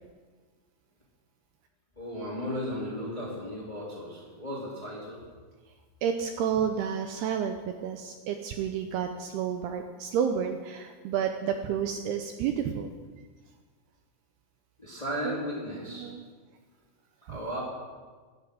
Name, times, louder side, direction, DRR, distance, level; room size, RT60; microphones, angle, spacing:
voice 1, 2.0-5.2 14.8-16.1 17.3-17.6, equal, 15° left, -4 dB, 1.8 m, -35 dB
voice 2, 6.0-12.9 15.2-15.4 15.9-16.2 17.3-17.4, right 8 dB, 80° right, 6 dB, 2.4 m, -30 dB
15.0 x 12.0 x 5.1 m, 1.4 s
omnidirectional pair, 5.2 m